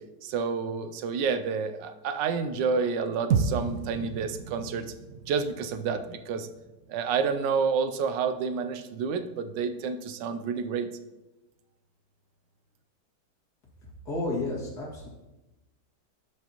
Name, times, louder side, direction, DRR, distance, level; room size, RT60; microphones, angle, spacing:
voice 1, 0.2-4.9 5.3-6.5 6.9-10.9, right 5 dB, 85° right, 9 dB, 1.3 m, -29 dB
sound 1, 3.3-7.7, right 5 dB, 70° right, 0.8 m, -33 dB
voice 2, 14.0-15.1, left 2 dB, 65° left, -4 dB, 2.6 m, -31 dB
12.5 x 5.3 x 2.9 m, 1.0 s
omnidirectional pair, 1.9 m